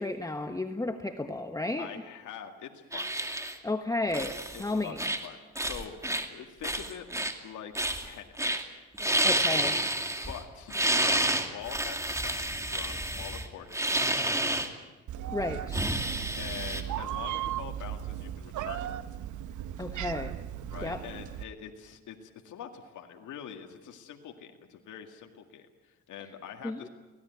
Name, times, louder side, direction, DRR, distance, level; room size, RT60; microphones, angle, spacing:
voice 1, 0.0-1.9 3.6-5.0 9.2-9.7 15.3-15.9 19.8-20.3 20.8-21.0 26.6-26.9, left 2 dB, 10° left, 7 dB, 1.3 m, -32 dB
voice 2, 1.8-3.1 4.5-5.0 5.2-7.1 7.4-8.7 9.1-9.4 10.3-14.6 15.5-15.6 16.4-18.8 20.7-26.9, left 8 dB, 75° left, 4 dB, 2.1 m, -44 dB
sound 1, 2.9-3.6 4.1-4.6 5.0-5.3 5.6-6.2 6.6-7.3 7.7-8.1 8.4-8.6 8.9-10.4 10.7-14.7 15.7-16.8, right 1 dB, 10° right, 2.5 m, -29 dB
Meow, 15.1-21.4, right 11 dB, 75° right, 1.0 m, -36 dB
24.0 x 17.5 x 9.4 m, 1.2 s
cardioid pair, 90°, 30 cm